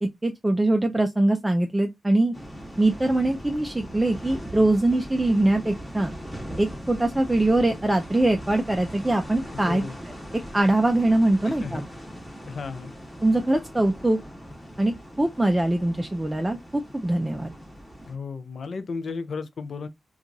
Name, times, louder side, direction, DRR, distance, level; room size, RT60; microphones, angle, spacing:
voice 1, 0.0-2.3 2.8-6.1 6.6-9.8 10.5-11.8 13.2-14.2 14.8-17.5, right 2 dB, 10° right, 0.3 m, -22 dB
sound 1, 2.3-18.1, equal, 10° left, 0.8 m, -40 dB
voice 2, 9.5-10.0 11.4-11.8 12.5-12.9 18.0-19.9, left 4 dB, 55° left, 0.4 m, -34 dB
2.8 x 2.3 x 2.5 m
wide cardioid pair, 135°, 0 cm